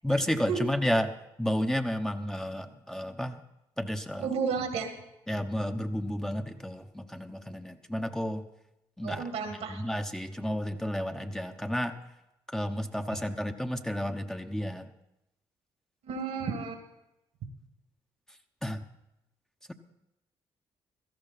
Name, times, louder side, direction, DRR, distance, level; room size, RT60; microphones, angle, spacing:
voice 1, 0.0-3.4 3.8-4.3 5.3-8.4 9.0-9.3 9.7-12.0 12.5-14.9 18.6-18.8, equal, 5° left, 6 dB, 1.0 m, -31 dB
voice 2, 4.2-4.9 9.0-9.8 16.0-16.8, right 5 dB, 80° right, 5 dB, 2.2 m, -32 dB
16.5 x 13.5 x 4.2 m, 0.88 s
supercardioid pair, 55°, 11 cm